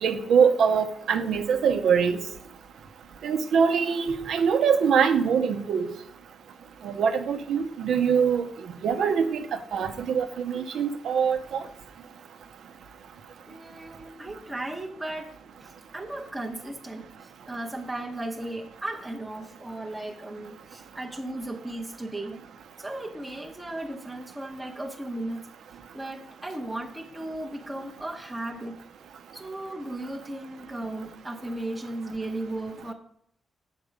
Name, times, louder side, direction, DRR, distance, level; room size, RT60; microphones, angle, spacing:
voice 1, 0.0-2.2 3.2-5.9 6.8-8.4 8.8-11.6, right 6 dB, 75° right, 8 dB, 0.9 m, -23 dB
voice 2, 13.4-22.4 22.8-25.4 25.9-28.8 29.3-32.9, right 1 dB, 10° right, 0 dB, 0.8 m, -36 dB
8.1 x 6.0 x 5.1 m, 0.68 s
cardioid pair, 130°, 0 cm